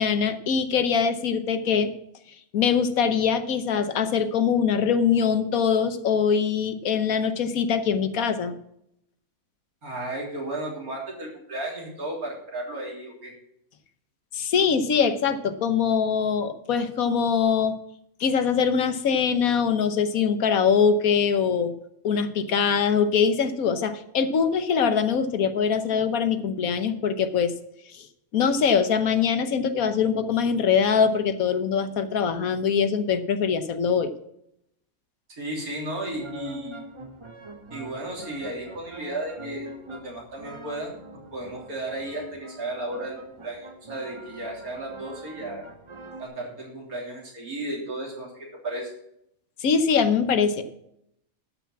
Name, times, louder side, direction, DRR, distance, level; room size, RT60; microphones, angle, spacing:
voice 1, 0.0-1.9 2.5-8.5 14.3-17.8 18.2-21.7 22.0-27.5 27.9-28.1 28.3-34.1 49.6-50.6, left 6 dB, 70° left, 10 dB, 1.4 m, -23 dB
voice 2, 9.8-13.3 35.4-36.8 37.7-41.0 41.3-45.7 46.2-48.9, right 1 dB, 80° right, -2 dB, 3.9 m, -34 dB
sound 1, 36.0-46.2, right 1 dB, 25° right, 0.8 m, -43 dB
12.5 x 5.9 x 7.3 m, 0.75 s
omnidirectional pair, 1.5 m